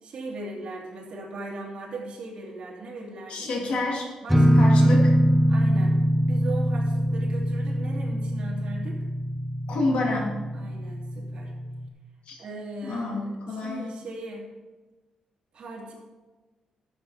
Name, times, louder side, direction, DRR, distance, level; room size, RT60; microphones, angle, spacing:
voice 1, 0.0-3.5 4.2-5.1 5.5-6.0 6.3-9.0 10.5-11.5 12.4-13.2 13.5-14.5 15.5-15.9, right 2 dB, 55° right, -2 dB, 2.7 m, -38 dB
voice 2, 3.3-4.1 4.5-5.1 9.7-10.3 12.3-12.4 12.8-13.9, left 2 dB, 80° left, -1 dB, 2.5 m, -28 dB
sound 1, 4.3-11.9, equal, ahead, 0.8 m, -23 dB
12.5 x 7.3 x 4.2 m, 1.2 s
wide cardioid pair, 145°, 2 cm